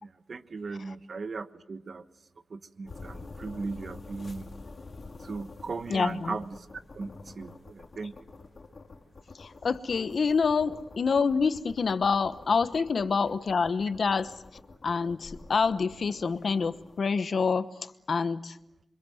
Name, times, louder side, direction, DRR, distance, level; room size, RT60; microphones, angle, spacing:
voice 1, 0.0-2.0 2.5-4.5 5.2-6.7 6.9-8.1, right 4 dB, 55° right, 11 dB, 1.2 m, -38 dB
sound 1, 2.9-17.0, left 3 dB, 45° left, 2.5 m, -48 dB
voice 2, 5.9-6.4 9.3-14.3 14.8-18.6, left 5 dB, 60° left, 13 dB, 1.0 m, -27 dB
28.0 x 25.0 x 7.8 m, 0.86 s
wide cardioid pair, 140°, 0 cm